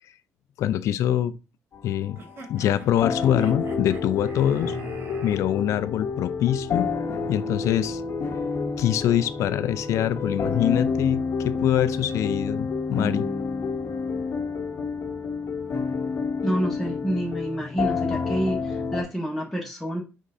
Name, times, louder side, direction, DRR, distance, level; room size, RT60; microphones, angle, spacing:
voice 1, 0.6-1.3 1.8-2.2 2.5-4.7 5.2-6.9 7.3-8.0 8.8-13.3, left 11 dB, 75° left, 0.4 m, -24 dB
sound 1, 1.7-19.0, left 4 dB, 55° left, 1.0 m, -29 dB
sound 2, 2.1-5.4, right 4 dB, 50° right, 1.2 m, -46 dB
voice 2, 16.4-20.0, right 1 dB, ahead, 1.5 m, -28 dB
5.3 x 3.8 x 2.5 m
supercardioid pair, 75°, 5 cm